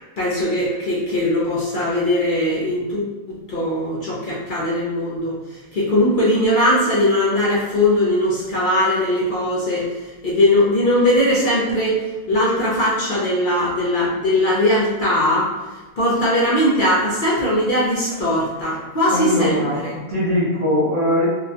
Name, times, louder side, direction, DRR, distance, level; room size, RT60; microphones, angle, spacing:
voice 1, 0.2-5.3 5.7-9.9 10.2-15.5 16.0-19.9, left 1 dB, 65° left, -7 dB, 0.4 m, -20 dB
voice 2, 19.1-21.3, left 1 dB, 35° right, -8 dB, 0.5 m, -21 dB
4.0 x 2.1 x 2.8 m, 1.2 s
omnidirectional pair, 1.8 m